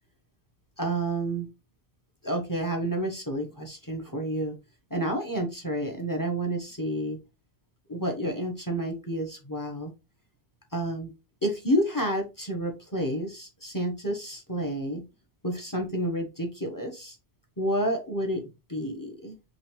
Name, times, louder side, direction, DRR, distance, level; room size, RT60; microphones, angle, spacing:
voice 1, 0.8-1.5 2.2-4.6 4.9-7.2 7.9-9.9 10.7-11.1 11.4-15.0 15.4-17.2 17.6-19.3, right 1 dB, 20° left, 3 dB, 0.9 m, -30 dB
5.4 x 3.2 x 3.0 m, 0.26 s
omnidirectional pair, 1.2 m